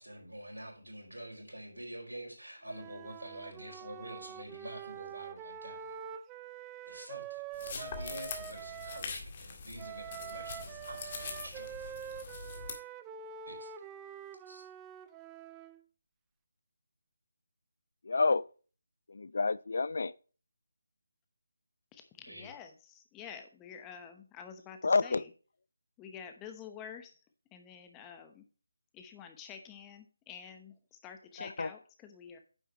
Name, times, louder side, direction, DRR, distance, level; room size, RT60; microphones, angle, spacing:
voice 1, 0.0-5.9 6.8-12.1 13.5-13.7 14.5-14.7 22.3-22.5, right 1 dB, 90° right, 4.7 m, -47 dB
Wind instrument woodwind instrument, 2.7-9.1 9.8-15.8, right 8 dB, 15° right, 0.5 m, -46 dB
sound 1, 7.5-12.7, left 4 dB, 35° left, 1.8 m, -43 dB
voice 2, 18.0-18.5 19.1-20.1 24.8-25.2 31.4-31.7, left 3 dB, 60° left, 0.4 m, -29 dB
voice 3, 21.9-25.3 26.0-27.1 27.5-28.4 28.9-32.4, left 7 dB, 15° left, 0.9 m, -49 dB
9.6 x 7.4 x 3.0 m
figure-of-eight pair, 155°, 0 cm